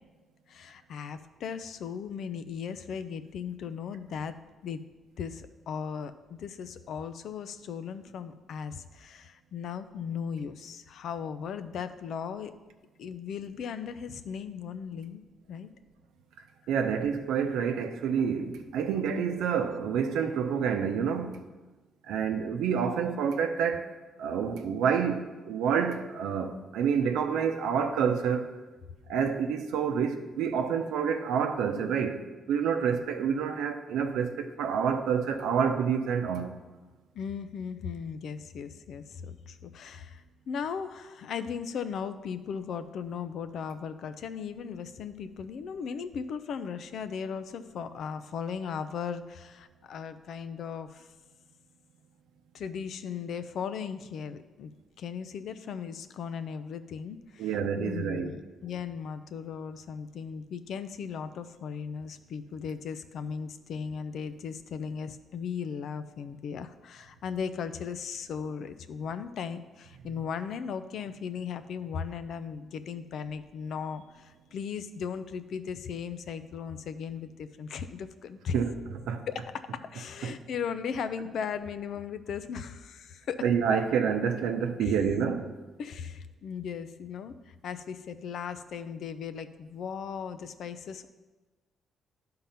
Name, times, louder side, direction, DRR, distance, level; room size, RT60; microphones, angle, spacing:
voice 1, 0.5-4.4 4.6-4.8 5.2-12.5 13.0-15.2 15.5-15.7 37.1-51.1 52.5-54.7 55.0-78.6 79.3-83.4 84.8-84.9 85.8-91.1, left 6 dB, 70° left, 0.5 m, -37 dB
voice 2, 16.7-21.3 22.1-23.9 24.2-28.5 29.1-36.5 57.4-58.3 78.5-78.7 79.0-79.3 80.2-80.3 83.4-85.6, right 7 dB, 85° right, 0.7 m, -28 dB
11.5 x 3.8 x 5.7 m
cardioid pair, 90°, 0 cm